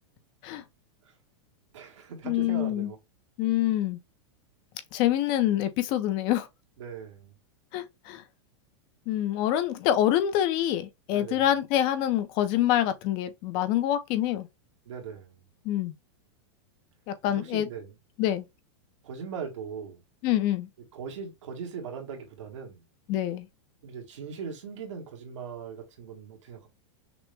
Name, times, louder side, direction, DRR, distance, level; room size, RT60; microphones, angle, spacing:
voice 1, 1.7-3.0 6.8-7.3 11.1-11.5 14.8-15.4 17.2-17.9 19.0-20.0 20.9-22.8 23.8-26.7, right 6 dB, 85° right, 1.7 m, -39 dB
voice 2, 2.2-2.9 3.4-4.0 4.9-6.5 7.7-8.2 9.1-14.5 15.7-15.9 17.1-17.7 18.2-18.5 20.2-20.7 23.1-23.5, left 12 dB, 30° left, 0.6 m, -26 dB
6.0 x 2.1 x 3.4 m
supercardioid pair, 170°, 15 cm